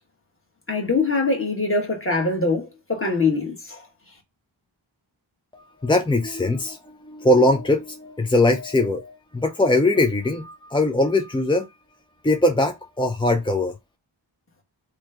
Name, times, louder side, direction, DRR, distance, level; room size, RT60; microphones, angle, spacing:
voice 1, 0.7-3.9, left 3 dB, 25° left, 1.2 m, -23 dB
voice 2, 5.5-11.7 12.2-13.7, left 2 dB, 10° left, 0.4 m, -21 dB
3.1 x 2.2 x 3.4 m
wide cardioid pair, 45°, 48 cm